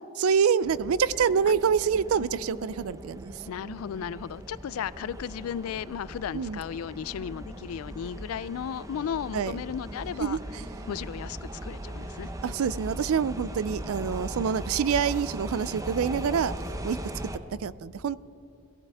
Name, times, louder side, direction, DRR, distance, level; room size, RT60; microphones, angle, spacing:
voice 1, 0.2-3.3 6.3-6.6 9.3-9.5 10.2-10.4 12.4-16.5 16.8-17.0 17.6-18.2, right 6 dB, 85° right, 18 dB, 0.4 m, -26 dB
sound 1, 0.6-17.4, right 1 dB, 15° right, 0.7 m, -39 dB
voice 2, 3.5-10.4 10.9-12.3, left 8 dB, 85° left, 20 dB, 0.3 m, -35 dB
21.5 x 15.0 x 3.5 m, 2.4 s
head